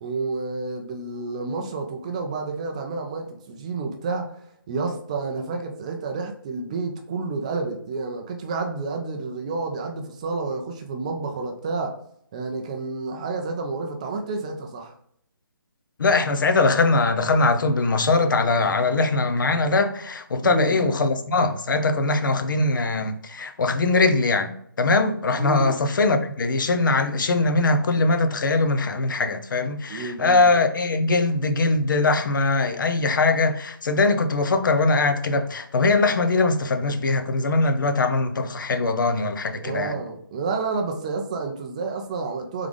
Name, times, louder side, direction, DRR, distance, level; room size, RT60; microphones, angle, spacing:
voice 1, 0.0-11.9 12.3-14.9 20.4-20.8 25.4-25.8 29.9-30.5 39.6-42.7, right 3 dB, 20° right, 0.3 m, -30 dB
voice 2, 16.0-24.5 24.8-39.9, left 3 dB, 60° left, 0.6 m, -21 dB
3.6 x 3.4 x 3.5 m
hypercardioid pair, 155°, 12 cm